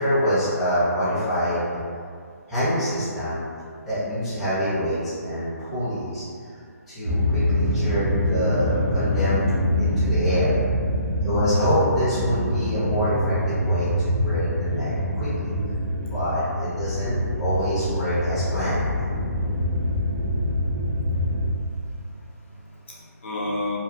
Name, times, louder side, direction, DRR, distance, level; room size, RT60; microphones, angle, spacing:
voice 1, 0.0-1.8 2.5-3.4 3.9-6.2 6.9-9.4 9.8-10.5 11.2-15.5 16.1-18.8, equal, ahead, -17 dB, 0.5 m, -26 dB
sound 1, 7.0-21.5, left 1 dB, 65° right, 0.4 m, -25 dB
voice 2, 21.6-23.8, left 2 dB, 45° left, -6 dB, 0.6 m, -34 dB
2.5 x 2.2 x 2.4 m, 2.2 s
hypercardioid pair, 165°, 9 cm